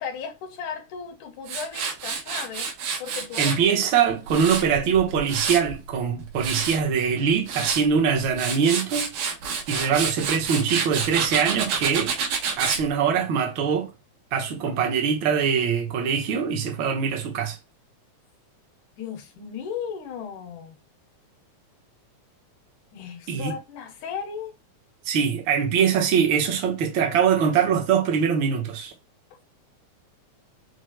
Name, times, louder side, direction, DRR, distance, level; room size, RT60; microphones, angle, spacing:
voice 1, 0.0-2.7 3.0-3.6 4.3-4.5 9.7-10.1 19.0-20.8 22.9-24.6, left 7 dB, 85° left, 2.5 m, -36 dB
Tools, 1.5-3.6 4.1-5.7 6.2-6.8 7.3-7.8 8.2-12.8, right 6 dB, 90° right, 2.4 m, -28 dB
voice 2, 3.4-9.1 9.7-12.1 12.6-13.9 14.3-17.6 23.3-23.5 25.1-28.9, right 7 dB, 75° right, 1.1 m, -23 dB
6.0 x 2.1 x 3.2 m
omnidirectional pair, 3.5 m